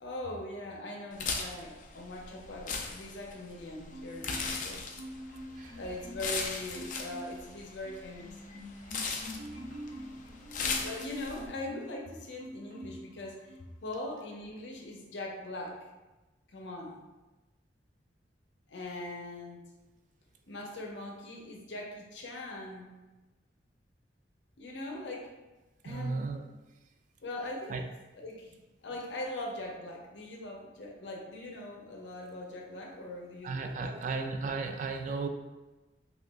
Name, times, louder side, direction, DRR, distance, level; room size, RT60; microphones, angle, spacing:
voice 1, 0.0-4.9 5.7-8.4 10.6-15.8 16.5-17.0 18.7-19.6 20.5-22.9 24.6-25.3 25.8-26.2 27.2-27.8 28.2-28.5 28.8-34.3, left 1 dB, 85° left, 0 dB, 0.6 m, -41 dB
sound 1, 1.1-11.5, left 4 dB, 45° left, 0.4 m, -38 dB
Marimba xylophone, 3.9-4.7 4.9-6.4 6.7-7.4 7.8-12.0 12.4-13.1 13.5-13.7, equal, 75° right, 0.9 m, -45 dB
voice 2, 25.8-26.4 27.7-27.8 33.4-35.3, right 4 dB, 45° right, 5 dB, 0.3 m, -35 dB
2.9 x 2.4 x 3.4 m, 1.1 s
head